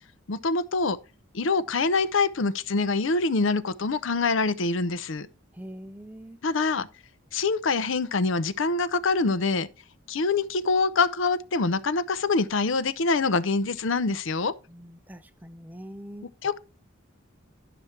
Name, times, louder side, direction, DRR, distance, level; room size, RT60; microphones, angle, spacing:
voice 1, 0.3-1.0 1.3-5.3 6.4-6.9 7.3-9.7 10.1-14.5 16.4-16.6, left 3 dB, 70° left, 0.6 m, -25 dB
voice 2, 5.5-6.4 14.7-16.3, equal, 10° right, 0.5 m, -43 dB
11.5 x 5.8 x 4.4 m
head